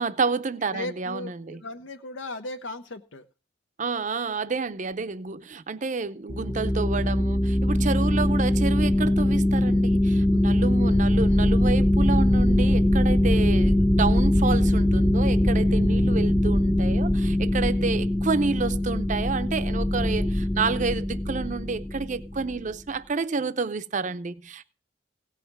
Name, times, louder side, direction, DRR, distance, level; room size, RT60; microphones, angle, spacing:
voice 1, 0.0-1.6 3.8-24.7, right 4 dB, 40° right, 0.6 m, -29 dB
voice 2, 0.7-3.2, left 2 dB, 80° left, 0.8 m, -37 dB
sound 1, 6.3-22.5, left 1 dB, 15° left, 0.6 m, -22 dB
16.5 x 5.7 x 5.9 m
head